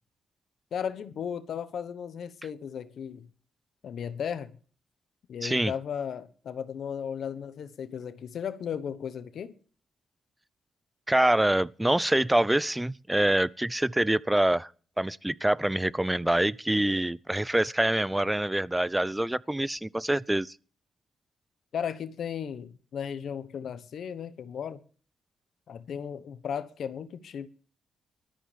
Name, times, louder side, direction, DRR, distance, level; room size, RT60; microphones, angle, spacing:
voice 1, 0.7-3.3 3.8-4.6 5.3-9.6 21.7-24.8 25.7-27.5, left 8 dB, 70° left, 1.1 m, -35 dB
voice 2, 5.4-5.7 11.1-14.7 15.0-20.5, right 1 dB, 10° right, 0.6 m, -25 dB
19.0 x 13.0 x 3.4 m
supercardioid pair, 50°, 0 cm